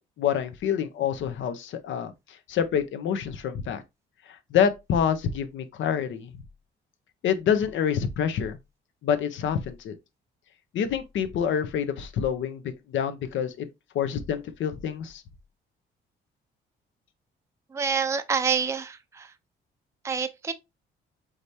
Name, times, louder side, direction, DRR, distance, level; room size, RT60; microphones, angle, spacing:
voice 1, 0.2-2.1 2.5-3.8 4.5-6.3 7.2-8.6 9.0-9.9 10.7-12.6 12.9-13.7 13.9-15.2, left 8 dB, 70° left, 0.7 m, -27 dB
voice 2, 17.7-19.3 20.0-20.5, right 6 dB, 15° right, 0.4 m, -27 dB
4.9 x 3.3 x 2.7 m
cardioid pair, 90°, 20 cm